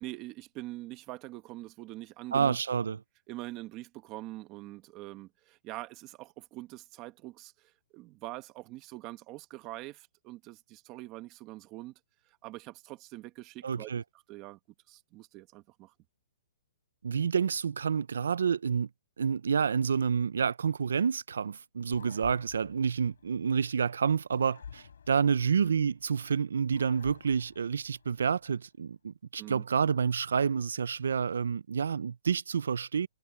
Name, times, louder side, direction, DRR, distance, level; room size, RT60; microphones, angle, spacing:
voice 1, 0.0-2.6 3.3-11.9 12.3-13.9 14.3-14.6 14.9-15.9 29.4-29.6, right 18 dB, 20° right, 1.4 m, -44 dB
voice 2, 2.3-3.0 13.6-14.0 17.0-18.9 19.2-33.1, right 6 dB, 85° right, 0.4 m, -29 dB
sound 1, 21.9-23.8 24.3-26.2 26.7-28.4, left 7 dB, 75° left, 5.4 m, -51 dB
hypercardioid pair, 170°, 0 cm